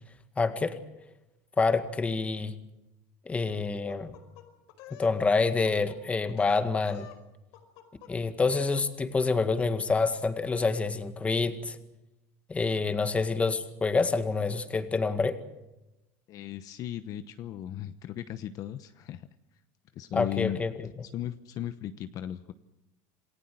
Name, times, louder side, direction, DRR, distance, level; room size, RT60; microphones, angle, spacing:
voice 1, 0.4-0.8 1.6-2.6 3.3-4.2 4.9-7.1 8.1-11.8 12.5-15.4 20.1-20.7, left 4 dB, 15° left, 9 dB, 2.0 m, -27 dB
sound 1, 3.9-5.2 5.5-6.0 6.3-7.2 7.5-8.1 8.4-8.9, left 12 dB, 75° left, 4.9 m, -49 dB
voice 2, 16.3-19.3 19.9-20.6 21.0-22.5, left 12 dB, 45° left, 11 dB, 1.0 m, -36 dB
28.0 x 18.5 x 7.7 m, 0.96 s
cardioid pair, 145°, 8 cm